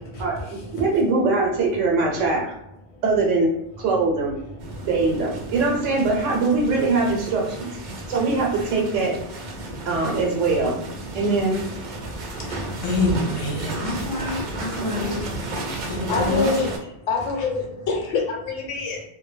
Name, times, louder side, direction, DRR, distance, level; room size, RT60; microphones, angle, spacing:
voice 1, 0.2-2.5 3.0-4.4 4.8-7.7 8.1-9.2 9.8-10.8 11.1-11.6, right 3 dB, 85° right, -1 dB, 0.9 m, -22 dB
sound 1, 4.6-16.8, right 2 dB, 55° right, 0.5 m, -33 dB
voice 2, 12.8-15.2 15.9-16.5, left 2 dB, 45° left, -2 dB, 0.4 m, -26 dB
voice 3, 16.1-16.7 17.1-19.0, left 4 dB, 80° left, 0 dB, 1.0 m, -25 dB
2.2 x 2.0 x 3.1 m, 0.84 s
omnidirectional pair, 1.2 m